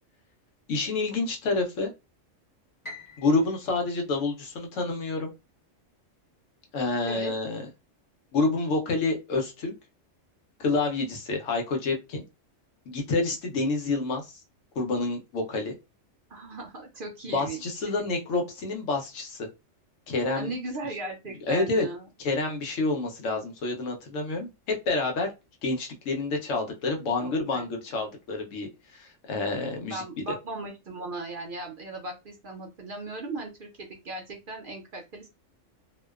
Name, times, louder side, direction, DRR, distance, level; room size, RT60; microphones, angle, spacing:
voice 1, 0.7-1.9 3.2-5.3 6.7-7.7 8.3-9.7 10.6-12.2 12.9-14.3 14.8-15.7 17.3-19.5 20.1-20.5 21.5-21.9 22.2-25.3 25.6-30.0, left 3 dB, 75° left, 3 dB, 1.0 m, -28 dB
Piano, 2.8-5.1, left 1 dB, 25° left, 0.5 m, -47 dB
voice 2, 16.3-18.1 20.3-22.1 27.2-27.6 29.8-35.3, right 2 dB, 55° right, 2 dB, 0.6 m, -37 dB
2.5 x 2.2 x 2.3 m, 0.25 s
omnidirectional pair, 1.3 m